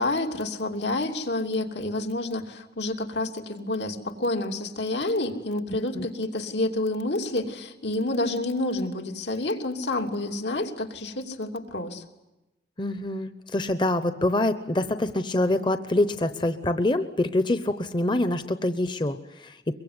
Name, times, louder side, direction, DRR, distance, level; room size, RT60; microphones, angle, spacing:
voice 1, 0.0-12.0, left 2 dB, 80° left, 4 dB, 3.0 m, -29 dB
voice 2, 12.8-19.7, left 1 dB, 25° left, 10 dB, 0.8 m, -25 dB
23.5 x 23.0 x 9.6 m, 0.99 s
head